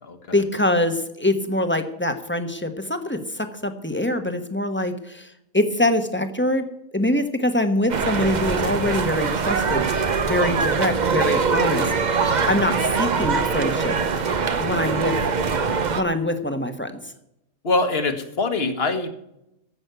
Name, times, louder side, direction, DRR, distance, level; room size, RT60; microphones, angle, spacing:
voice 1, 0.3-6.7 6.9-14.0 14.6-15.2 15.9-16.9, left 1 dB, 10° left, 7 dB, 1.1 m, -24 dB
sound 1, 7.9-16.0, right 5 dB, 40° right, 0.8 m, -23 dB
voice 2, 17.6-19.3, left 3 dB, 45° left, 7 dB, 1.7 m, -23 dB
15.0 x 6.3 x 8.1 m, 0.82 s
omnidirectional pair, 1.5 m